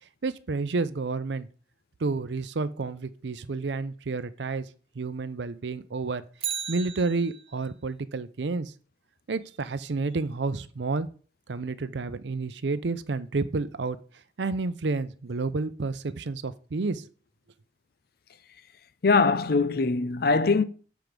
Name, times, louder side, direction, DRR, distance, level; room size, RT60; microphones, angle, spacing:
voice 1, 0.2-1.5 2.0-4.7 4.9-6.2 6.7-8.7 9.3-11.1 11.5-14.0 14.4-17.1, right 3 dB, 75° right, 0.6 m, -30 dB
Bicycle, 6.3-7.7 16.1-16.2, right 9 dB, 30° right, 0.5 m, -35 dB
voice 2, 19.0-20.6, left 4 dB, 55° left, 0.5 m, -22 dB
7.8 x 4.7 x 5.1 m
head